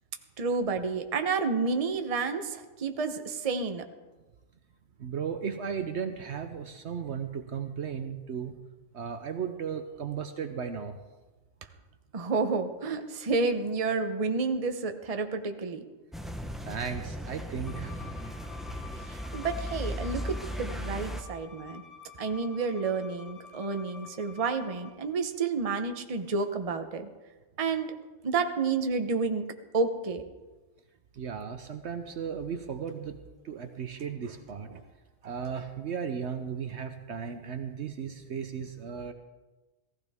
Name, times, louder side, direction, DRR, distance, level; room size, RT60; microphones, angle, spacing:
voice 1, 0.4-3.8 12.1-15.8 19.1-21.8 22.2-27.1 27.6-27.9 28.2-29.4 29.7-30.2, right 4 dB, 30° right, 7 dB, 0.9 m, -30 dB
voice 2, 5.0-8.6 8.9-11.0 16.6-18.0 31.1-34.7 35.2-39.1, right 7 dB, 60° right, 8 dB, 1.0 m, -35 dB
sound 1, 16.1-21.2, equal, ahead, 0.6 m, -37 dB
Bowed string instrument, 17.7-24.9, left 6 dB, 60° left, 2.0 m, -50 dB
16.5 x 15.0 x 3.6 m, 1.2 s
omnidirectional pair, 1.4 m